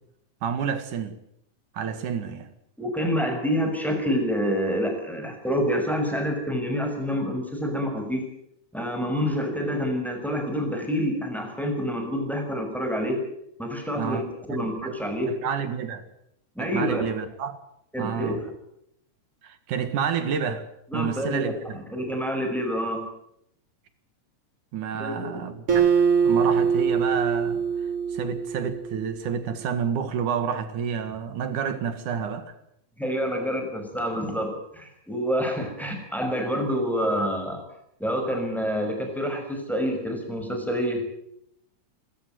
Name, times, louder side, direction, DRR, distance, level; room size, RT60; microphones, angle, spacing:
voice 1, 0.4-1.1 1.7-2.5 14.0-14.2 14.5-14.9 15.4-16.0 16.6-17.6 18.0-18.4 19.4-20.6 20.9-21.8 24.7-25.9 26.2-27.6 28.1-32.5, right 7 dB, 75° right, 3.3 m, -29 dB
voice 2, 2.8-8.3 8.7-13.2 13.6-14.2 14.5-15.3 16.6-17.1 17.9-18.5 20.9-23.0 24.9-25.5 33.0-37.6 38.0-41.0, equal, ahead, 5.9 m, -27 dB
Acoustic guitar, 25.7-29.2, right 6 dB, 45° right, 5.4 m, -23 dB
27.0 x 14.5 x 9.3 m
omnidirectional pair, 3.6 m